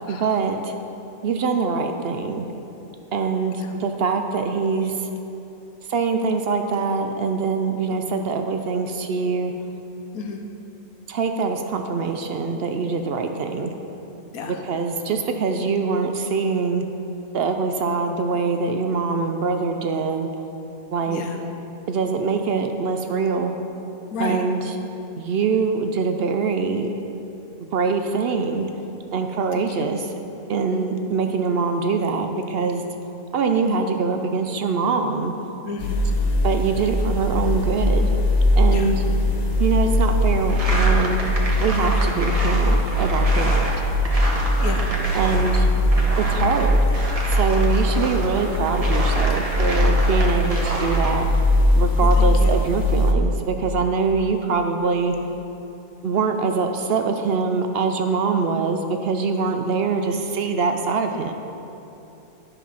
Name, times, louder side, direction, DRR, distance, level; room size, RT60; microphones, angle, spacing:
voice 1, 0.1-0.7 1.2-2.5 3.1-5.1 5.9-9.5 11.1-13.7 14.5-16.9 17.3-20.3 20.9-21.3 21.9-23.6 24.2-24.8 25.2-26.9 27.6-28.7 29.1-30.1 30.5-32.8 33.3-35.3 36.4-38.1 38.6-39.0 39.6-41.2 41.6-43.7 45.1-45.7 46.2-46.8 47.3-51.3 51.8-55.1 56.0-61.3, right 4 dB, 60° right, 5 dB, 0.6 m, -23 dB
voice 2, 21.1-21.4 24.1-24.5 29.6-29.9 35.6-36.1 38.7-39.0 44.6-45.0 52.2-52.6 59.3-59.6, left 3 dB, 80° left, 3 dB, 1.4 m, -32 dB
sound 1, 35.8-53.1, equal, 50° left, 0.5 m, -20 dB
sound 2, 40.5-45.7 45.9-51.1, right 1 dB, 30° right, 1.1 m, -29 dB
11.5 x 5.5 x 5.7 m, 2.9 s
omnidirectional pair, 1.5 m